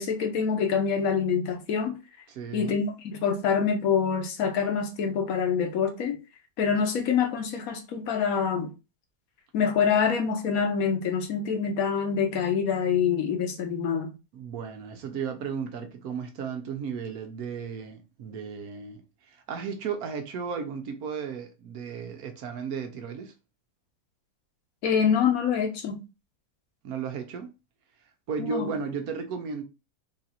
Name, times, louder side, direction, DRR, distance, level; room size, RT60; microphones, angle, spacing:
voice 1, 0.0-1.9 2.5-6.2 6.6-8.7 9.5-14.1 24.8-26.0 28.4-28.7, left 6 dB, 65° left, 1.2 m, -26 dB
voice 2, 2.3-2.8 14.3-19.0 19.3-23.3 26.8-27.5 28.3-29.6, right 6 dB, 70° right, 1.2 m, -34 dB
3.8 x 2.5 x 4.2 m
omnidirectional pair, 1.7 m